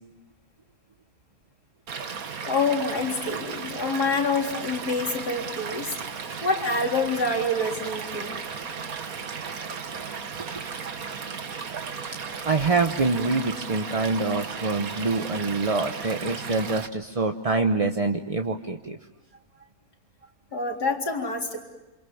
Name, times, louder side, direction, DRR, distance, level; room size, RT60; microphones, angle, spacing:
Stream / Liquid, 1.9-16.9, right 6 dB, 65° right, 1.8 m, -35 dB
voice 1, 2.5-5.9 6.4-8.4 20.5-21.6, left 3 dB, 85° left, 1 dB, 4.3 m, -27 dB
voice 2, 12.3-19.0, right 3 dB, 25° right, 5 dB, 0.9 m, -25 dB
28.5 x 27.5 x 7.2 m, 1.1 s
omnidirectional pair, 1.6 m